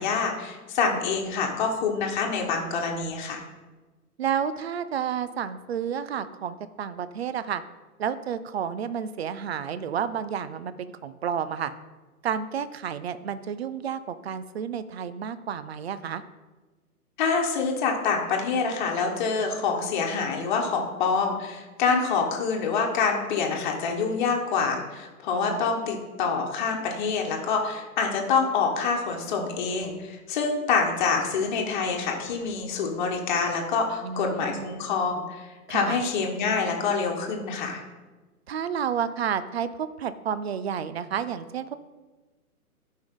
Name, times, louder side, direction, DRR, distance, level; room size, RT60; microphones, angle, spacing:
voice 1, 0.0-3.4 17.2-35.4 35.7-37.8, left 5 dB, 30° left, 1 dB, 1.3 m, -26 dB
voice 2, 4.2-7.6 8.0-11.7 12.2-16.2 25.3-25.6 34.0-34.8 35.7-36.0 38.5-41.7, right 8 dB, 45° right, 13 dB, 0.5 m, -31 dB
13.0 x 5.3 x 3.8 m, 1.2 s
hypercardioid pair, 140°, 45 cm